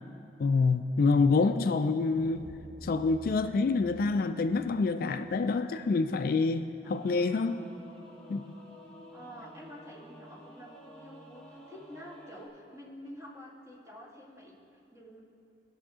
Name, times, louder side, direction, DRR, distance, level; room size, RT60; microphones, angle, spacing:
voice 1, 0.4-2.5 2.8-7.6 8.3-8.4, left 4 dB, 55° left, 0.3 m, -27 dB
sound 1, 2.0-6.1, equal, 50° right, 2.5 m, -51 dB
Singing / Musical instrument, 6.8-12.5, equal, 5° left, 1.3 m, -51 dB
voice 2, 9.1-15.2, equal, 15° right, 1.9 m, -49 dB
18.0 x 6.4 x 3.7 m
head